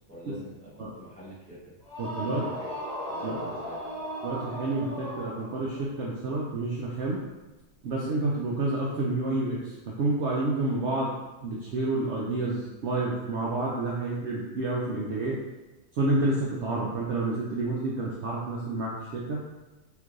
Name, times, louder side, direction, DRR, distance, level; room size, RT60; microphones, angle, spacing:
voice 1, 0.1-0.7 1.0-1.7 2.2-2.7 3.1-4.0, right 1 dB, 10° left, -8 dB, 0.4 m, -45 dB
sound 1, 1.8-5.8, equal, 10° right, 1.1 m, -36 dB
voice 2, 2.0-2.4 3.2-3.4 4.2-7.2 7.8-11.1 11.4-15.3 15.9-19.4, right 2 dB, 70° right, -5 dB, 0.6 m, -29 dB
3.3 x 3.1 x 2.4 m, 1.1 s
omnidirectional pair, 1.6 m